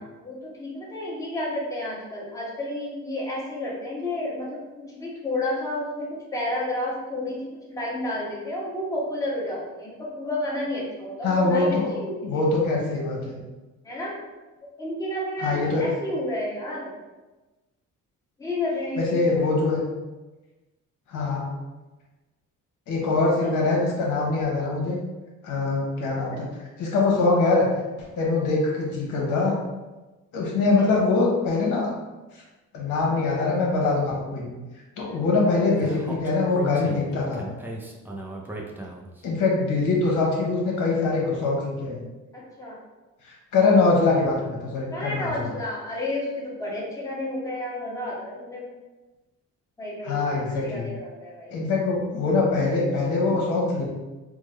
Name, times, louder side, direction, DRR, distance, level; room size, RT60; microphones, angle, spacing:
voice 1, 0.0-12.4 13.8-14.2 14.8-16.9 18.4-19.4 23.4-23.5 26.1-26.4 30.8-31.0 35.0-35.2 38.5-38.6 42.3-42.8 44.9-48.7 49.8-50.3 50.6-51.5, left 1 dB, 10° left, -5 dB, 1.0 m, -31 dB
voice 2, 11.2-11.9 12.2-13.4 15.4-15.8 19.0-19.8 21.1-21.5 22.9-25.0 25.4-26.5 26.8-27.7 28.2-29.5 30.3-31.9 32.3-32.4 32.7-34.5 35.0-37.5 39.2-42.0 43.2-45.5 50.0-50.9 51.5-53.9, left 3 dB, 80° left, -2 dB, 1.0 m, -23 dB
Speech, 35.8-39.2, right 1 dB, 5° right, 0.4 m, -36 dB
3.6 x 2.0 x 3.1 m, 1.2 s
cardioid pair, 90°, 30 cm